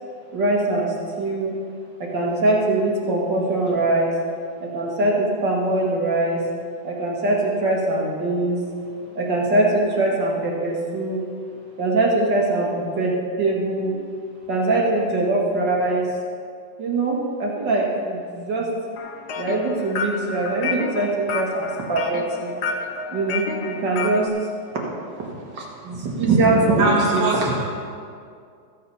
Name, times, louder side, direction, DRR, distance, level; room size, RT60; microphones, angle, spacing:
voice 1, 0.3-1.5 2.0-4.1 4.6-6.4 6.8-8.6 9.2-11.2 11.8-14.0 14.5-16.1 16.8-18.7 19.4-22.5 23.1-24.3 25.2-27.5, right 2 dB, 70° right, 2.4 m, -22 dB
sound 1, 19.0-24.3, left 4 dB, 65° left, 1.4 m, -30 dB
voice 2, 26.8-27.7, right 2 dB, 50° right, 1.8 m, -22 dB
14.5 x 7.8 x 5.5 m
omnidirectional pair, 2.0 m